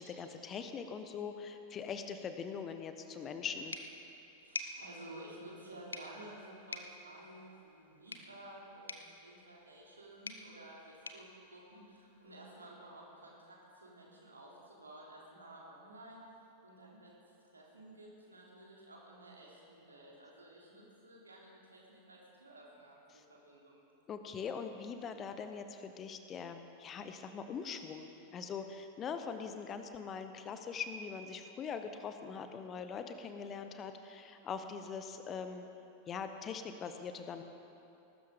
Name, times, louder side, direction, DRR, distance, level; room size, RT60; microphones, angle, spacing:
voice 1, 0.0-3.8 23.1-23.2 24.1-35.7 36.1-37.4, left 6 dB, 25° left, 8 dB, 1.0 m, -42 dB
sound 1, 3.7-12.4, left 3 dB, 75° left, 0.9 m, -49 dB
voice 2, 4.4-16.2 16.6-17.2 17.5-23.8, right 1 dB, 75° right, -3 dB, 3.3 m, -53 dB
19.5 x 12.5 x 5.1 m, 2.8 s
figure-of-eight pair, 90°, 0 cm